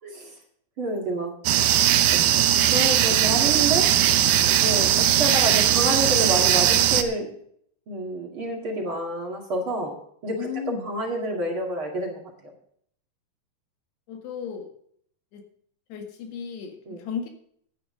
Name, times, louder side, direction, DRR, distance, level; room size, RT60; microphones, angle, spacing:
voice 1, 0.8-1.3 2.7-3.9 4.6-7.3 7.9-9.9 10.2-10.4 10.8-12.2 16.9-17.0, right 1 dB, 40° right, 1 dB, 2.3 m, -28 dB
sound 1, 1.5-7.0, right 11 dB, 80° right, 1.8 m, -19 dB
voice 2, 10.4-10.9 14.1-14.7 15.3-15.4 15.9-17.3, left 7 dB, 85° left, 4 dB, 4.0 m, -34 dB
16.0 x 11.0 x 3.8 m, 0.65 s
omnidirectional pair, 4.7 m